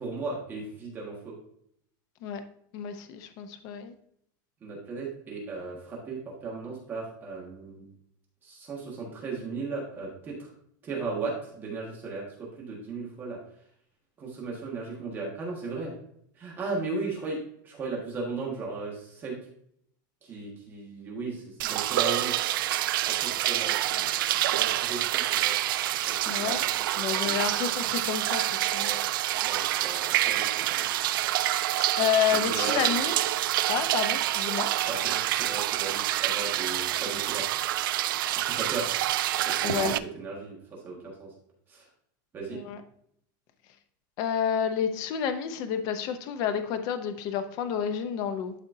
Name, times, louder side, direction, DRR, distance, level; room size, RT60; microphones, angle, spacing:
voice 1, 0.0-1.4 4.6-7.9 8.4-10.5 10.8-13.4 14.2-15.9 16.4-19.4 20.2-22.3 23.1-25.5 26.1-27.5 28.8-29.0 29.3-30.9 32.3-32.9 34.9-37.4 38.3-38.9 39.4-41.3 41.7-41.8 42.3-42.6, right 3 dB, 20° right, -3 dB, 1.5 m, -36 dB
voice 2, 2.7-3.9 26.3-26.6 27.0-29.0 32.0-33.1 33.7-34.7 39.6-40.0 42.5-42.8 44.2-48.5, left 8 dB, 35° left, 9 dB, 0.6 m, -30 dB
sound 1, 21.6-40.0, right 14 dB, 80° right, 0.4 m, -27 dB
11.5 x 4.2 x 2.7 m, 0.70 s
supercardioid pair, 175°, 11 cm